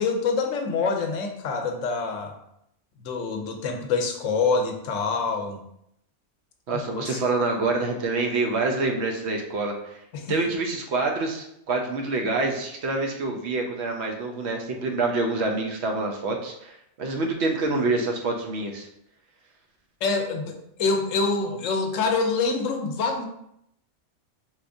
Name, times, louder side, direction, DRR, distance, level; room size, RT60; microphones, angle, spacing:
voice 1, 0.0-2.3 3.0-5.6 6.7-7.2 10.1-10.3 20.0-23.3, left 4 dB, 85° left, 4 dB, 1.0 m, -26 dB
voice 2, 6.7-10.0 10.3-18.9, right 3 dB, 65° right, 2 dB, 0.8 m, -26 dB
3.9 x 2.9 x 2.6 m, 0.77 s
omnidirectional pair, 1.3 m